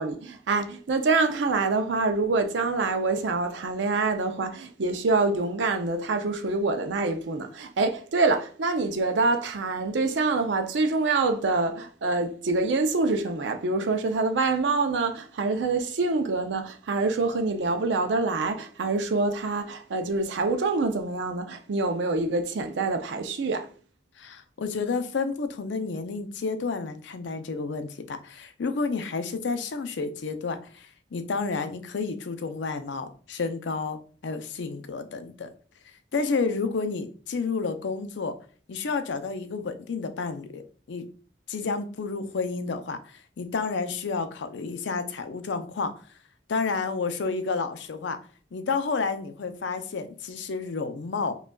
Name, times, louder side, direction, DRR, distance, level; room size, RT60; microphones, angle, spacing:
voice 1, 0.0-23.7, right 3 dB, 75° right, 0.5 m, -26 dB
voice 2, 24.2-35.5 36.1-38.4 38.7-40.6 40.9-41.0 41.5-46.1 46.5-48.2 48.5-51.4, left 4 dB, 75° left, 0.5 m, -30 dB
5.1 x 2.3 x 2.3 m
head